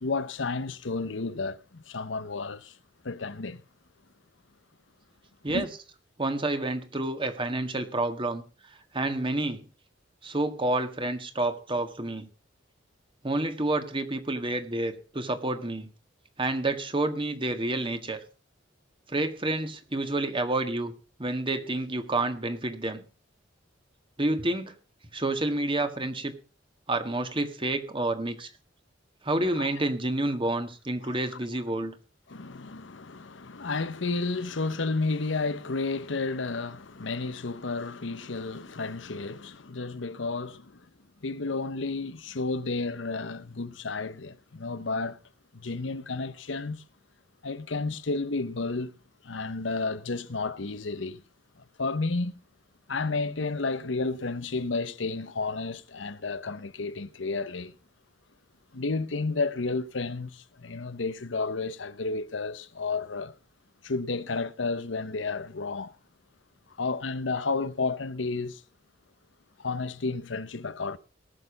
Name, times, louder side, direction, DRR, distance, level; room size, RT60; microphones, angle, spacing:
voice 1, 0.0-2.7 3.0-3.6 5.5-5.7 29.5-29.8 31.0-31.2 32.3-40.8 41.2-45.2 45.5-46.8 47.4-48.9 49.2-51.2 51.8-52.4 52.9-57.7 58.7-63.3 63.8-65.9 66.8-68.6 69.6-71.0, left 3 dB, 80° left, 0.9 m, -31 dB
voice 2, 6.2-8.4 8.9-9.6 10.2-12.3 13.2-15.9 16.4-18.2 19.1-20.9 21.2-23.0 24.2-24.7 25.1-26.3 26.9-28.5 29.2-32.0, right 2 dB, 30° right, 1.8 m, -29 dB
19.5 x 6.8 x 5.3 m
head